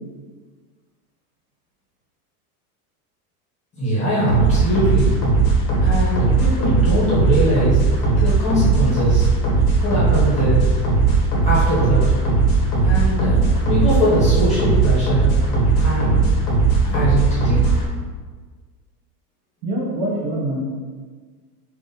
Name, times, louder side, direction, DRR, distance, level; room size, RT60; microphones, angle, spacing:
voice 1, 3.8-5.1 5.8-7.8 8.2-9.3 9.8-10.6 11.4-12.0 12.8-15.3 15.8-16.2 16.8-17.7, right 1 dB, 15° left, -9 dB, 1.1 m, -22 dB
sound 1, 4.3-17.9, right 3 dB, 35° left, 0.9 m, -18 dB
voice 2, 19.6-20.6, right 1 dB, 85° right, -4 dB, 1.4 m, -24 dB
3.6 x 2.5 x 4.0 m, 1.5 s
supercardioid pair, 175°, 45 cm